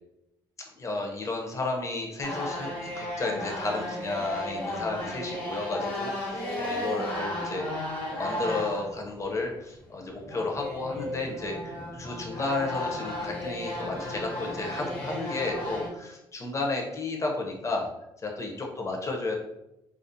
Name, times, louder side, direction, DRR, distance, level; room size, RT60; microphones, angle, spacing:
voice 1, 0.7-2.7 3.0-17.9 18.2-19.4, left 3 dB, 30° left, 0 dB, 0.6 m, -32 dB
sound 1, 2.2-9.0 9.4-9.5 9.7-15.9, left 1 dB, 70° left, 0.9 m, -34 dB
2.4 x 2.4 x 2.6 m, 0.90 s
cardioid pair, 95°, 10 cm